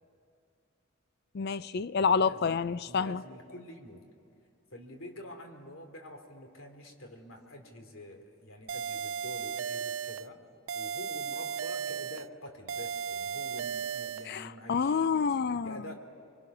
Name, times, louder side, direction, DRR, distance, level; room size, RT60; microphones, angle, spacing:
voice 1, 1.3-3.2 14.3-15.8, left 5 dB, 50° left, 0.4 m, -28 dB
voice 2, 2.2-2.6 2.9-4.0 4.7-10.4 10.7-15.3 15.6-16.0, equal, 75° left, 2.8 m, -47 dB
sound 1, 8.7-10.3 10.7-12.3 12.7-14.3, right 7 dB, 70° right, 0.4 m, -35 dB
25.0 x 24.0 x 6.0 m
head